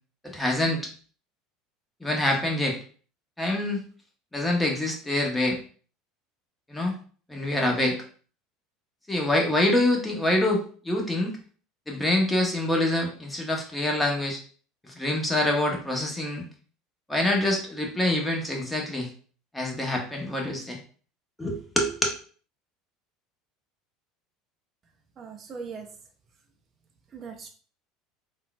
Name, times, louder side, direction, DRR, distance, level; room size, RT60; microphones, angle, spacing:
voice 1, 0.2-0.9 2.0-2.8 3.4-3.8 4.3-5.6 6.7-7.0 7.3-8.0 9.1-11.3 11.9-14.4 14.8-16.4 17.1-19.1 19.5-20.8 21.4-21.9, left 1 dB, 10° left, 0 dB, 0.9 m, -25 dB
voice 2, 25.2-25.9 27.1-27.5, right 5 dB, 35° right, 3 dB, 0.5 m, -39 dB
3.6 x 2.3 x 2.3 m, 0.42 s
hypercardioid pair, 75°, 0 cm